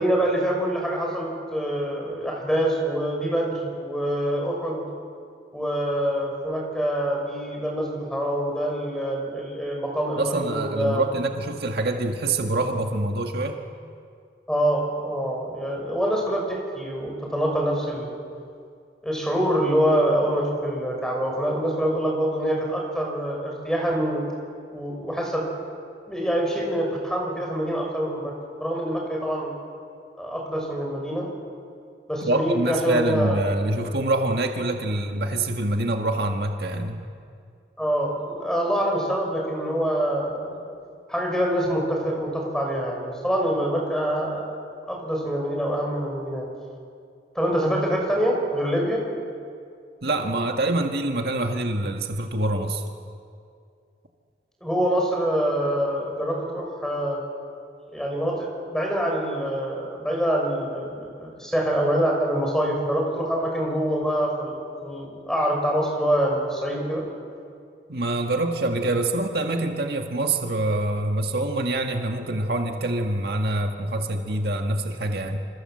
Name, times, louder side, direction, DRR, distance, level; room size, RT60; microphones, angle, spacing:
voice 1, 0.0-4.8 5.5-11.0 14.5-18.1 19.0-24.2 24.7-25.4 26.1-28.3 28.6-29.5 30.2-31.3 32.1-33.5 37.8-40.6 41.1-44.4 44.9-46.5 47.3-49.0 54.6-57.2 57.9-64.6 64.8-67.0, equal, 5° left, 0 dB, 6.2 m, -25 dB
voice 2, 10.2-13.6 32.2-37.1 50.0-52.8 67.9-75.4, right 2 dB, 65° right, 3 dB, 1.8 m, -25 dB
27.5 x 27.0 x 7.8 m, 2.3 s
head